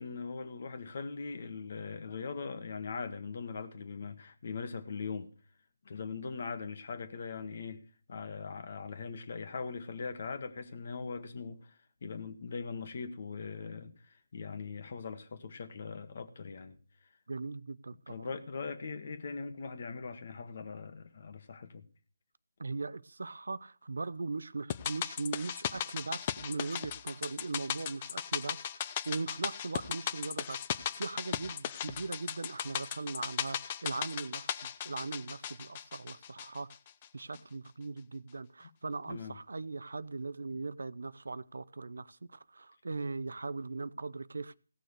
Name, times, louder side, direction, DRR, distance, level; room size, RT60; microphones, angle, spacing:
voice 1, 0.0-5.3 5.9-16.8 18.1-21.9 39.1-39.3 40.5-40.6, left 5 dB, 50° left, 1.7 m, -41 dB
voice 2, 17.3-18.3 22.6-36.7 37.1-44.5, right 3 dB, 75° right, 0.6 m, -39 dB
sound 1, 24.7-37.1 37.3-37.4, left 9 dB, 30° left, 0.7 m, -37 dB
16.5 x 6.6 x 6.5 m
figure-of-eight pair, 155°, 0 cm